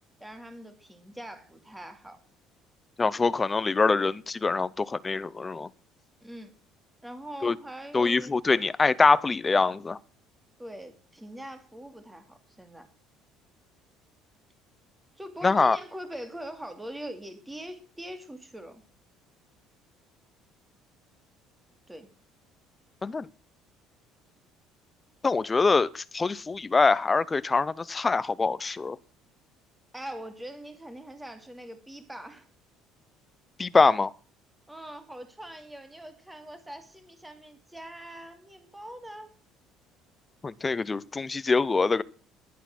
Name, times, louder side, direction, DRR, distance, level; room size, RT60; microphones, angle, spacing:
voice 1, 0.2-2.2 6.2-6.5 7.0-8.3 10.6-12.9 15.2-18.8 21.9-22.1 29.9-32.5 34.7-39.3, right 1 dB, 5° right, 2.3 m, -42 dB
voice 2, 3.0-5.7 7.4-7.6 7.9-10.0 15.4-15.8 23.0-23.3 25.2-29.0 33.6-34.1 40.4-42.0, left 4 dB, 15° left, 0.6 m, -24 dB
11.5 x 11.5 x 6.0 m
cardioid pair, 155°, 0 cm